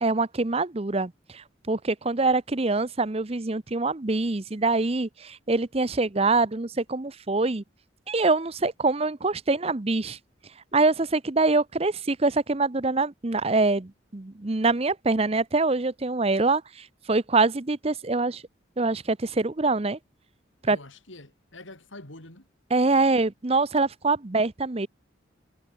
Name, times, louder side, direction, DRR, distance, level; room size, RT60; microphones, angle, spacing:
voice 1, 0.0-7.6 8.1-10.2 10.7-18.4 18.8-20.0 20.7-20.8 22.7-24.9, right 3 dB, 30° right, 0.8 m, -24 dB
voice 2, 20.6-22.5, left 2 dB, 85° left, 5.5 m, -45 dB
head